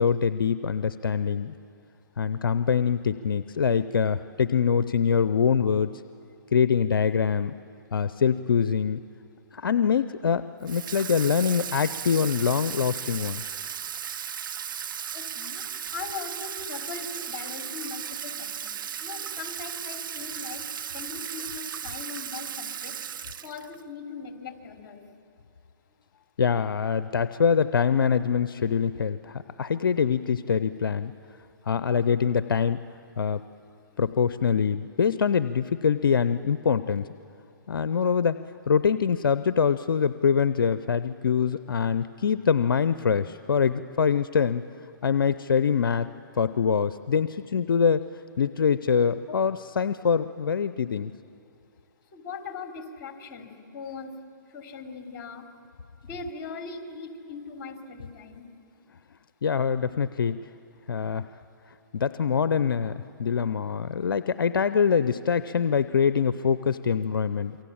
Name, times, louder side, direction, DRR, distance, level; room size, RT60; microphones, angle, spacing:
voice 1, 0.0-1.5 2.2-6.0 6.5-7.5 7.9-9.0 9.5-13.4 26.4-31.1 31.7-32.8 33.2-33.4 34.0-37.1 37.7-38.4 38.7-44.6 45.0-46.1 46.4-48.0 48.4-51.1 59.4-60.4 60.9-61.3 61.9-67.6, left 6 dB, 85° left, 13 dB, 0.7 m, -24 dB
Water tap faucet / Sink (filling or washing), 10.7-23.8, right 8 dB, 70° right, 0.7 m, -36 dB
voice 2, 15.1-15.6 15.9-18.7 19.0-20.6 20.9-23.0 23.4-25.0 33.9-34.0 52.1-54.2 54.5-55.5 56.0-58.5, left 5 dB, 45° left, 4 dB, 3.3 m, -40 dB
28.0 x 23.5 x 8.7 m, 2.5 s
hypercardioid pair, 140°, 11 cm